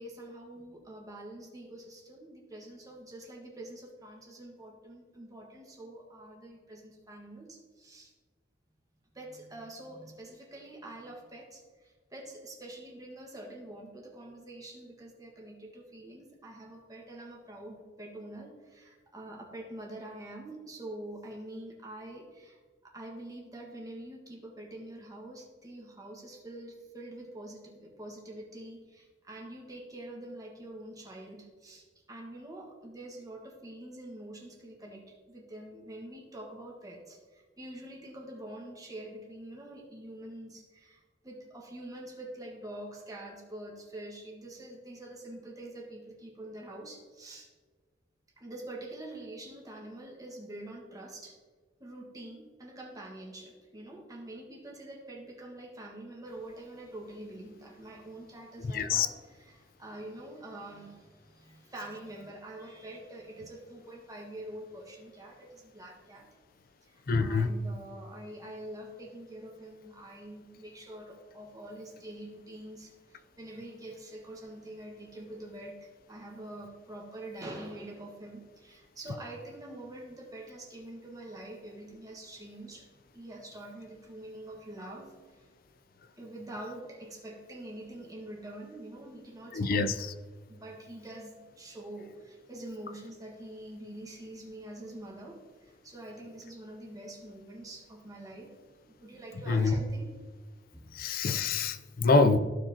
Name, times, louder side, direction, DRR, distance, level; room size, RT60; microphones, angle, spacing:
voice 1, 0.0-8.1 9.1-47.5 48.4-51.4 51.8-66.3 66.9-82.9 83.1-85.5 86.2-90.1 90.5-98.5 98.8-100.1 100.7-100.9 101.2-101.3, right 1 dB, 20° right, -1 dB, 1.5 m, -45 dB
voice 2, 58.7-59.1 67.1-67.5 89.5-90.1 99.5-99.7 100.9-102.4, left 4 dB, 55° left, 11 dB, 0.5 m, -25 dB
14.5 x 5.0 x 2.9 m, 1.4 s
head